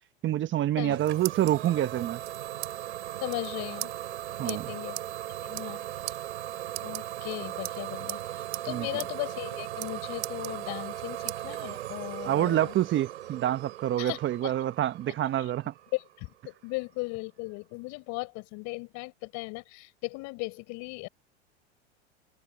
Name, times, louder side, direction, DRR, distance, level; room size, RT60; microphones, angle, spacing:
voice 1, 0.2-2.2 4.4-4.6 8.7-8.9 12.2-15.7, right 12 dB, 35° right, 1.2 m, -27 dB
sound 1, 0.8-1.7 2.2-2.7 3.0-3.1 3.3-3.5 3.8-3.9 4.5-4.6 5.0-5.1 5.4-5.8 6.1-6.2 6.7-7.3 7.6-8.2 8.5-8.7 9.0-9.1 9.4-9.9 10.2-10.9 11.3-11.4 11.9-12.8, right 31 dB, 60° right, 2.2 m, -38 dB
Idling / Domestic sounds home sounds, 0.9-16.4, right 13 dB, 80° right, 6.0 m, -38 dB
voice 2, 3.2-3.9 4.4-5.0 5.4-5.8 6.1-6.2 6.8-12.7 14.0-14.5 15.4-15.5 15.9-21.1, left 26 dB, 55° left, 4.8 m, -37 dB
hypercardioid pair, 95°, 34 cm